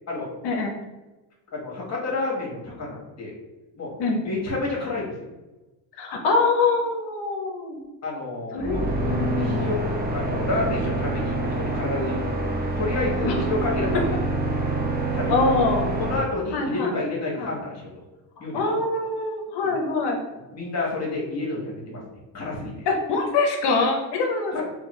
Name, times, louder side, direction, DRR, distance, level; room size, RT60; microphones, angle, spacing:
voice 1, 1.5-3.3 3.8-3.9 4.2-5.3 8.0-9.8 10.1-12.4 12.8-14.0 15.1-15.3 16.0-17.9 18.4-18.6 19.6-19.7 20.3-22.0 22.3-22.9 24.5-24.6, left 2 dB, 35° left, -3 dB, 1.3 m, -29 dB
voice 2, 6.0-7.8 8.5-8.8 9.1-9.7 13.3-13.4 15.3-15.9 16.5-16.9 17.4-17.5 18.5-20.2 22.9-24.6, left 3 dB, 65° left, 2 dB, 0.7 m, -24 dB
sound 1, 8.6-16.2, right 2 dB, 20° right, 0.6 m, -26 dB
3.5 x 2.2 x 3.0 m, 1.1 s
cardioid pair, 90°, 45 cm